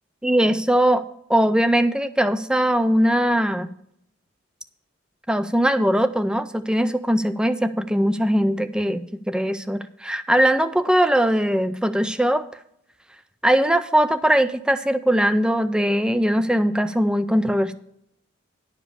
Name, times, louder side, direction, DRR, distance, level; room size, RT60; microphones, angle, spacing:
voice 1, 0.2-1.0 1.3-3.7 5.3-12.4 13.4-17.7, equal, 5° right, 12 dB, 0.4 m, -20 dB
11.0 x 5.1 x 6.9 m, 0.74 s
head